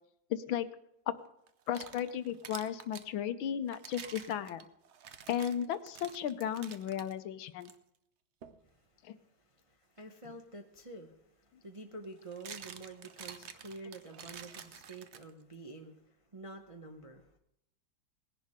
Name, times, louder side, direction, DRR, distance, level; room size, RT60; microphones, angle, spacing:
voice 1, 0.3-0.7 1.7-4.7 5.3-7.7 9.0-9.1, left 9 dB, 80° left, 11 dB, 1.6 m, -35 dB
sound 1, 1.5-3.1 3.7-7.1 7.6-7.8 8.4-8.6 10.8-10.9 12.0-15.5, right 7 dB, 75° right, 0.6 m, -49 dB
voice 2, 8.6-17.3, right 2 dB, 30° right, 2 dB, 0.6 m, -49 dB
19.0 x 10.5 x 3.6 m, 0.78 s
omnidirectional pair, 2.2 m